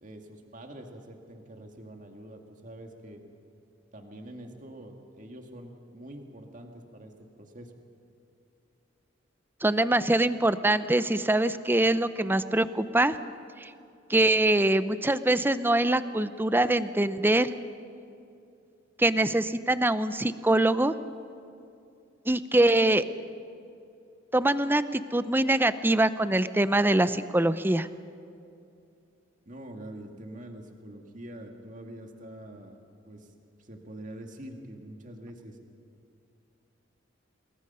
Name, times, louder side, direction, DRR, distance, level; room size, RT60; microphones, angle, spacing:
voice 1, 0.0-3.2 3.9-7.7 29.5-33.3 33.6-35.6, right 1 dB, 45° right, 3 dB, 2.2 m, -45 dB
voice 2, 9.6-13.2 13.6-13.7 14.1-17.5 19.0-20.9 22.3-23.0 24.3-27.9, right 1 dB, 10° right, 13 dB, 0.6 m, -24 dB
27.5 x 20.5 x 5.6 m, 2.6 s
head